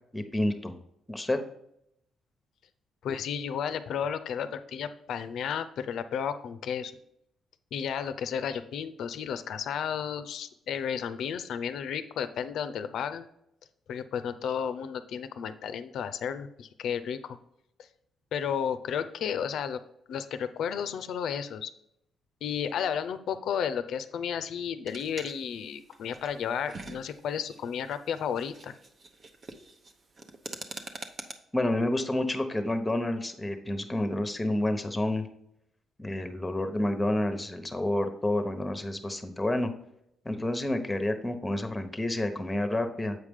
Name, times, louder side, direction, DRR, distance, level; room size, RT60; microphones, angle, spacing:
voice 1, 0.1-0.7 1.1-1.4 31.5-35.3 36.0-39.7 40.2-43.2, left 1 dB, 15° left, 7 dB, 0.9 m, -29 dB
voice 2, 3.0-6.9 7.7-13.3 13.9-17.4 18.3-19.8 20.1-21.7 22.4-28.7, left 8 dB, 70° left, 12 dB, 0.5 m, -33 dB
sound 1, 24.9-31.3, right 3 dB, 40° right, 0.8 m, -45 dB
8.0 x 4.9 x 3.6 m, 0.78 s
cardioid pair, 90°, 0 cm